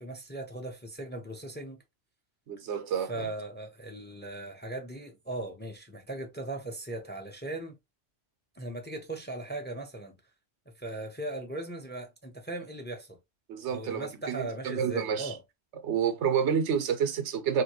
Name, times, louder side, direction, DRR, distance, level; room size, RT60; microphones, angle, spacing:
voice 1, 0.0-1.8 3.0-7.8 8.6-10.2 10.8-13.2 13.7-15.4, right 2 dB, 10° left, 0.5 m, -38 dB
voice 2, 2.5-3.3 13.5-15.3 15.8-17.6, right 7 dB, 90° right, 1.0 m, -29 dB
2.9 x 2.7 x 2.9 m
omnidirectional pair, 1.1 m